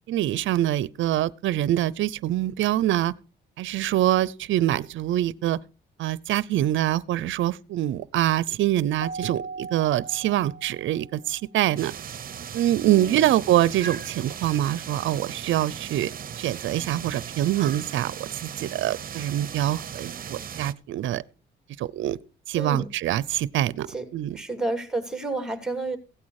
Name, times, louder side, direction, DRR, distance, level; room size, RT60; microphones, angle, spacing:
voice 1, 0.1-3.1 3.6-5.6 6.0-11.9 12.5-16.1 16.4-18.1 18.6-21.2 21.8-22.2 22.5-23.9 24.1-24.4, right 13 dB, 75° right, 0.6 m, -24 dB
Keyboard (musical), 9.0-11.3, right 4 dB, 80° left, 2.7 m, -38 dB
sound 1, 11.8-20.7, right 8 dB, 45° right, 0.9 m, -37 dB
voice 2, 12.9-13.3 22.6-22.9 23.9-24.1 24.3-26.0, right 2 dB, 5° right, 2.8 m, -30 dB
16.0 x 8.5 x 4.8 m
cardioid pair, 90°, 20 cm